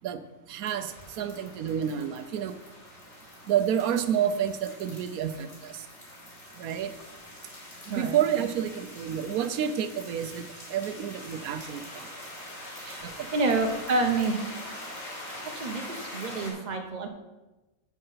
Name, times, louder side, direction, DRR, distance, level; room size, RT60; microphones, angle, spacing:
voice 1, 0.5-2.6 3.5-5.9 6.6-6.9 7.9-12.1 13.0-13.4, right 9 dB, 85° right, 11 dB, 1.1 m, -29 dB
sound 1, 0.6-16.5, left 1 dB, 65° left, 3.6 m, -44 dB
voice 2, 13.3-14.4 15.5-17.1, right 3 dB, 35° right, 5 dB, 1.1 m, -28 dB
7.7 x 7.4 x 5.6 m, 1.1 s
omnidirectional pair, 1.5 m